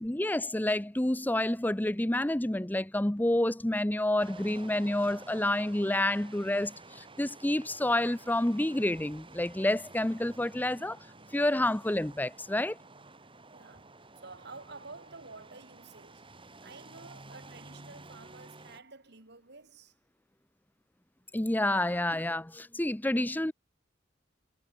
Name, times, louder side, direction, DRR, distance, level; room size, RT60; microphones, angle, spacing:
voice 1, 0.0-11.0 11.3-12.8 21.3-23.5, left 1 dB, 10° left, 0.7 m, -29 dB
sound 1, 4.2-18.8, right 3 dB, 30° right, 7.8 m, -52 dB
voice 2, 13.5-13.9 14.2-16.3 16.6-19.9, right 3 dB, 65° right, 3.0 m, -50 dB
head